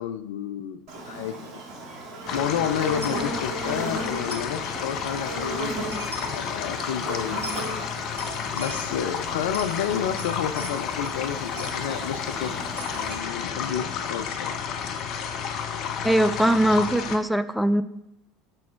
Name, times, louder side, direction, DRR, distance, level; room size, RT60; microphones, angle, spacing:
voice 1, 0.0-1.4 2.3-5.8 6.3-7.5 8.5-12.7 12.9-14.6, left 9 dB, 65° left, 10 dB, 0.4 m, -30 dB
Buzz, 0.9-13.2, right 2 dB, 45° right, 1.9 m, -36 dB
sound 1, 2.3-17.2, left 7 dB, 50° left, 0.8 m, -31 dB
Coin (dropping), 3.0-3.3 4.3-4.6 5.7-5.8 5.9-6.5 7.4-7.7 8.2-8.9 9.4-11.2 11.6-11.8 12.8-15.4, right 1 dB, 80° right, 0.8 m, -41 dB
voice 2, 16.0-17.8, right 1 dB, ahead, 12 dB, 0.4 m, -21 dB
6.1 x 5.9 x 4.6 m, 0.85 s
figure-of-eight pair, 70°, 0 cm